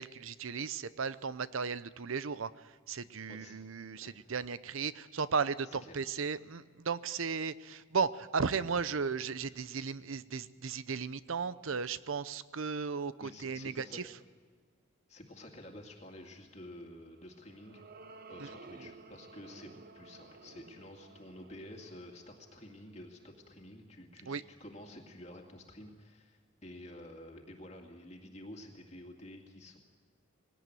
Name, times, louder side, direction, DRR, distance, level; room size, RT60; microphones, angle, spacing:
voice 1, 0.0-14.1 18.4-18.5 24.3-24.4, right 5 dB, 80° right, 16 dB, 0.7 m, -35 dB
voice 2, 5.8-6.1 13.2-14.0 15.1-17.8 18.3-29.8, left 1 dB, 30° left, 1 dB, 2.4 m, -50 dB
sound 1, 17.0-23.6, right 3 dB, 45° right, 0.8 m, -54 dB
20.5 x 18.0 x 9.2 m, 1.5 s
head